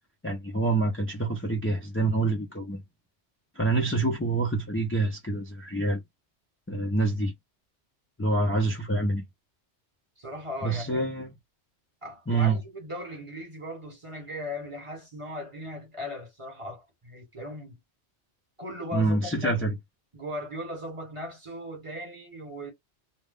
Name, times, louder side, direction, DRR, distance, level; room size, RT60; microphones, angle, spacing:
voice 1, 0.2-2.8 3.6-6.0 6.7-7.3 8.2-9.2 10.6-11.3 12.3-12.6 18.9-19.7, right 2 dB, 15° left, 0.5 m, -26 dB
voice 2, 10.2-11.1 12.0-17.8 18.6-19.8 20.1-22.7, left 1 dB, 30° right, 1.2 m, -38 dB
2.3 x 2.2 x 3.6 m
omnidirectional pair, 1.2 m